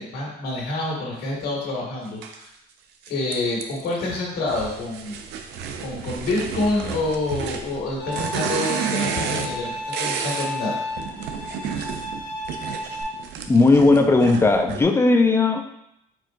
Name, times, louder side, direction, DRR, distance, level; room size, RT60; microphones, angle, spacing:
voice 1, 0.0-2.5 3.1-5.2 5.8-10.8, left 2 dB, 70° left, -3 dB, 1.8 m, -27 dB
sound 1, 2.2-2.4 3.1-3.9 4.5-10.5 10.9-14.8, right 7 dB, 85° right, 0.5 m, -31 dB
Bowed string instrument, 8.0-13.0, left 2 dB, 85° left, 1.5 m, -33 dB
voice 2, 13.5-15.7, left 3 dB, 15° left, 4 dB, 0.5 m, -17 dB
4.7 x 4.4 x 2.5 m, 0.79 s
cardioid pair, 110°, 17 cm